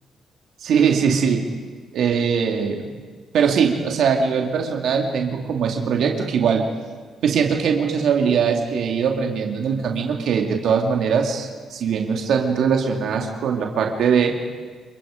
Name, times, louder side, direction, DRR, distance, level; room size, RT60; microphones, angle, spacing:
voice 1, 0.6-1.4 1.9-2.9 3.3-6.7 7.2-14.4, right 6 dB, 75° right, 2 dB, 2.3 m, -21 dB
28.5 x 23.0 x 5.1 m, 1.5 s
cardioid pair, 90°, 0 cm